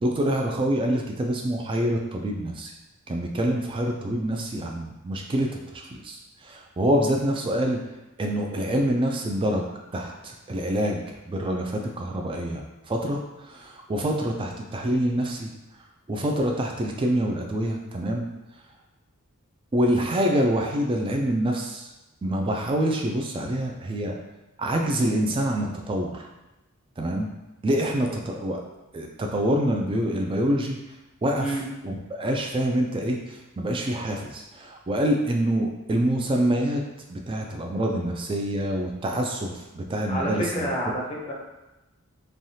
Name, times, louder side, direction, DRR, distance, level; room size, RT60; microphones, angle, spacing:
voice 1, 0.0-2.7 3.1-7.8 8.2-9.7 9.9-15.5 16.1-18.3 19.7-21.9 22.2-24.1 24.6-26.3 27.0-27.3 27.6-28.6 28.9-30.8 31.2-31.5 31.8-36.8 37.1-40.7, right 1 dB, 25° right, 2 dB, 0.3 m, -26 dB
voice 2, 40.1-41.3, right 1 dB, 25° left, -3 dB, 0.6 m, -28 dB
3.2 x 2.3 x 2.7 m, 1.0 s
head